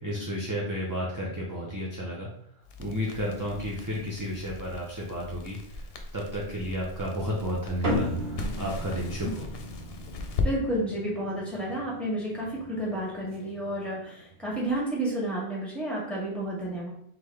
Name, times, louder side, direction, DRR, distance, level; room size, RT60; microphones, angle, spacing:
voice 1, 0.0-2.3 2.8-5.8 6.1-9.5, equal, 20° right, -4 dB, 0.6 m, -32 dB
Crackle, 2.6-10.5, left 3 dB, 60° left, 0.8 m, -37 dB
sound 1, 7.8-14.6, left 1 dB, 60° right, 1.6 m, -36 dB
voice 2, 10.4-16.9, right 1 dB, ahead, -5 dB, 1.6 m, -31 dB
3.9 x 3.8 x 3.3 m, 0.71 s
omnidirectional pair, 1.2 m